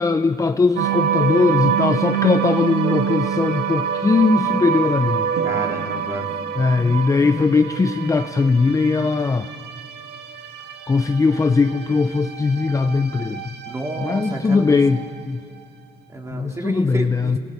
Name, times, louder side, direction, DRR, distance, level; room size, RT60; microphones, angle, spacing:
voice 1, 0.0-5.3 6.6-9.5 10.9-13.6 14.0-15.4 16.3-17.4, left 4 dB, 20° left, 8 dB, 0.7 m, -19 dB
sound 1, 0.8-15.2, right 8 dB, 80° right, 1.8 m, -26 dB
voice 2, 5.4-6.3 13.6-14.8 16.1-17.4, right 1 dB, 15° right, 2 dB, 3.3 m, -30 dB
28.5 x 19.0 x 6.6 m, 2.3 s
cardioid pair, 110°, 17 cm